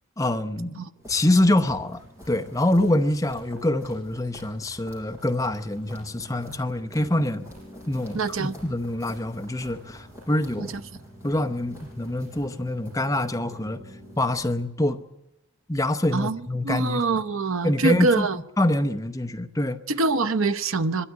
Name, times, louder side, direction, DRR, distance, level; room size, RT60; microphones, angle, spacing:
voice 1, 0.2-0.8 1.1-2.0 2.3-7.5 7.9-10.7 11.2-13.8 14.2-15.0 15.7-17.0 17.6-18.3 18.6-19.8, left 1 dB, 15° left, 0.7 m, -25 dB
sound 1, 1.0-14.6, equal, 15° right, 7.9 m, -46 dB
voice 2, 8.1-8.6 10.6-10.7 16.1-18.4 19.9-21.0, right 3 dB, 75° right, 0.8 m, -24 dB
23.5 x 13.0 x 9.7 m
head